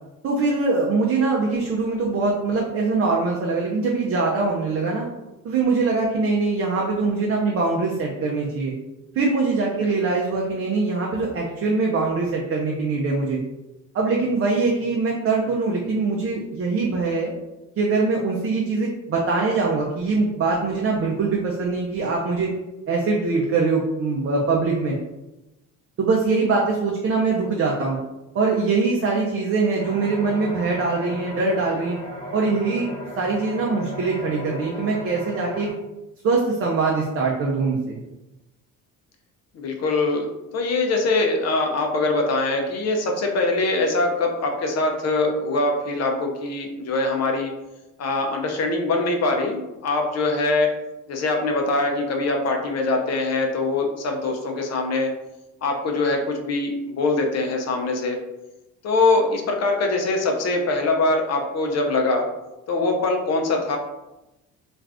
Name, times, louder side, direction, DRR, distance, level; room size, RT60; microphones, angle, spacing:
voice 1, 0.2-5.1 5.4-8.7 9.2-13.4 13.9-17.3 17.8-22.5 22.9-25.0 26.0-28.0 28.3-32.0 32.3-32.9 33.2-35.7 36.2-38.0, right 3 dB, 45° right, -2 dB, 0.5 m, -23 dB
sound 1, 29.8-35.7, equal, 25° left, 1.0 m, -36 dB
voice 2, 39.5-40.3 40.5-47.5 48.0-50.7 51.1-55.1 55.6-58.2 58.8-62.3 62.7-63.8, left 2 dB, 50° left, 2 dB, 0.6 m, -23 dB
2.5 x 2.3 x 3.3 m, 0.98 s
cardioid pair, 100°, 33 cm